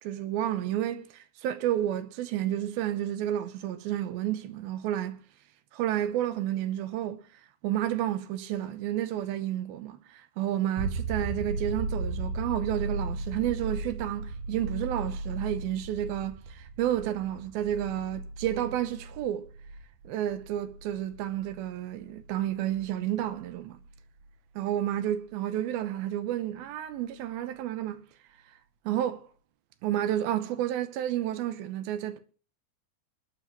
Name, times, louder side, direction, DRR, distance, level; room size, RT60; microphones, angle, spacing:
voice 1, 0.0-5.2 5.7-7.2 7.6-19.5 20.1-23.8 24.6-28.0 28.9-29.2 29.8-32.2, right 12 dB, 85° right, 2.7 m, -31 dB
sound 1, 10.8-24.3 27.0-27.1, right 2 dB, 70° right, 2.1 m, -37 dB
27.0 x 9.4 x 3.1 m
omnidirectional pair, 4.4 m